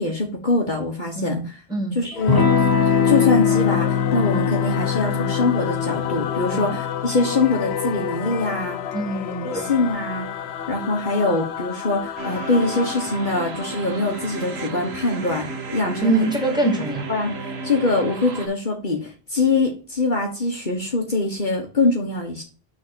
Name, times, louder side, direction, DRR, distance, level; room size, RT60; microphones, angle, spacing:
voice 1, 0.0-1.6 1.9-2.5 3.0-8.8 9.4-10.3 10.7-15.5 15.7-16.2 17.1-17.3 17.6-22.4, left 3 dB, 50° left, 1 dB, 1.5 m, -23 dB
voice 2, 1.2-2.0 6.5-6.7 8.9-9.7 16.0-17.1, right 2 dB, 5° right, 0 dB, 2.6 m, -24 dB
Singing / Musical instrument, 2.1-15.0, left 9 dB, 80° left, 1.0 m, -31 dB
Electric guitar / Strum, 2.3-10.6, left 7 dB, 20° left, 1.0 m, -23 dB
sound 1, 12.2-18.5, right 2 dB, 75° right, 1.5 m, -32 dB
6.4 x 4.1 x 6.2 m, 0.34 s
omnidirectional pair, 1.1 m